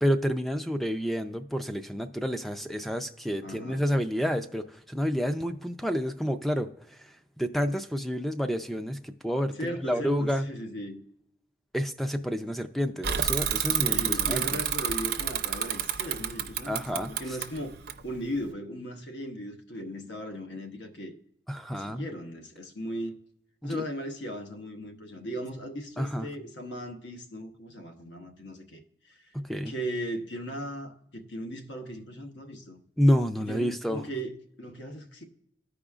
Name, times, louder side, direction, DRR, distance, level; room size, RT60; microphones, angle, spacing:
voice 1, 0.0-6.7 7.0-7.1 7.4-10.5 11.7-14.4 16.7-17.1 21.5-22.0 23.6-23.8 26.0-26.3 29.3-29.7 33.0-34.0, equal, ahead, 0.3 m, -29 dB
voice 2, 3.4-3.8 9.6-11.0 13.8-21.1 21.7-23.1 23.6-28.8 29.1-29.2 29.7-32.8 33.4-35.3, equal, 85° left, 1.0 m, -37 dB
Bicycle / Mechanisms, 13.0-18.5, right 9 dB, 60° right, 0.5 m, -29 dB
14.5 x 5.0 x 2.4 m
head